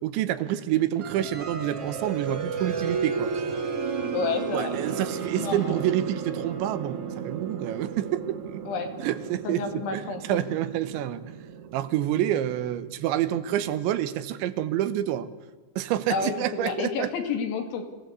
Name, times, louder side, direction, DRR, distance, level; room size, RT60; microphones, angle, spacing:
voice 1, 0.0-3.3 4.5-8.6 9.0-11.2 11.7-15.3 15.8-17.1, right 12 dB, 80° right, 13 dB, 3.3 m, -28 dB
sound 1, 1.0-13.5, right 5 dB, 45° right, 2.2 m, -34 dB
voice 2, 4.1-4.8 5.3-5.8 8.7-8.9 9.4-10.4 16.1-16.3 16.6-17.8, left 5 dB, 80° left, 6 dB, 4.9 m, -30 dB
26.5 x 17.5 x 8.3 m, 1.3 s
omnidirectional pair, 5.3 m